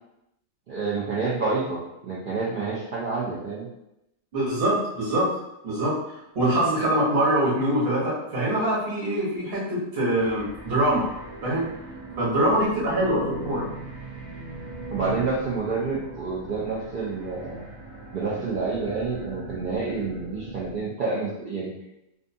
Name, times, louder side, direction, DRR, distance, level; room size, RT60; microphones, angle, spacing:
voice 1, 0.7-3.7 14.9-17.6 18.1-21.7, right 4 dB, 85° right, -6 dB, 0.4 m, -28 dB
voice 2, 4.3-5.4 5.6-6.0 6.3-11.0 11.4-11.6 12.2-13.7, right 1 dB, 45° right, -7 dB, 1.1 m, -24 dB
sound 1, 10.1-20.9, right 2 dB, 15° right, 0.6 m, -40 dB
2.6 x 2.3 x 2.6 m, 0.88 s
omnidirectional pair, 1.5 m